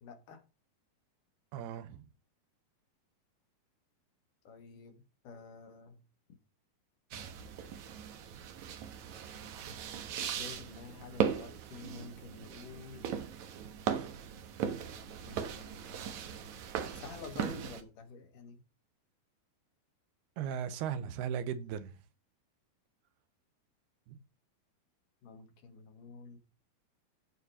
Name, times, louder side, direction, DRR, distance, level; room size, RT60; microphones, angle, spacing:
voice 1, 0.0-0.4 4.4-5.0 5.2-6.0 10.2-13.1 15.2-16.1 16.9-18.6 25.2-26.4, left 5 dB, 65° left, 2.7 m, -49 dB
voice 2, 1.5-2.0 20.4-21.9 24.1-24.2, right 8 dB, 80° right, 2.9 m, -37 dB
sound 1, 7.1-17.8, right 8 dB, 65° right, 2.1 m, -38 dB
14.5 x 4.9 x 4.2 m
omnidirectional pair, 4.5 m